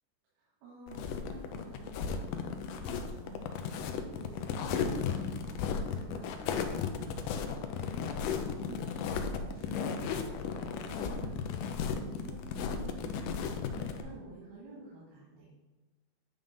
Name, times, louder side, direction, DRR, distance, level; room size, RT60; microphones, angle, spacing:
voice 1, 0.3-15.5, right 3 dB, 80° right, -6 dB, 3.4 m, -51 dB
sound 1, 0.9-14.0, left 6 dB, 90° left, 1.8 m, -35 dB
9.2 x 3.6 x 5.4 m, 1.1 s
omnidirectional pair, 4.4 m